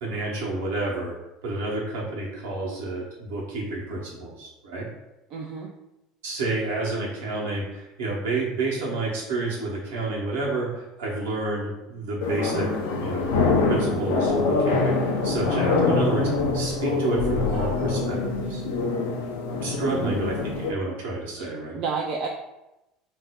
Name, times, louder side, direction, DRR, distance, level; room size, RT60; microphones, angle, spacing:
voice 1, 0.0-1.1 1.4-4.9 6.2-12.7 13.0-13.3 13.6-18.6 19.6-21.8, right 3 dB, 70° right, -3 dB, 0.9 m, -30 dB
voice 2, 5.3-5.7 19.9-20.2 21.4-21.5 21.7-22.3, right 5 dB, 50° right, 0 dB, 0.4 m, -30 dB
sound 1, 12.2-20.7, left 3 dB, 70° left, 0.4 m, -24 dB
2.6 x 2.1 x 3.5 m, 0.92 s
figure-of-eight pair, 70°, 0 cm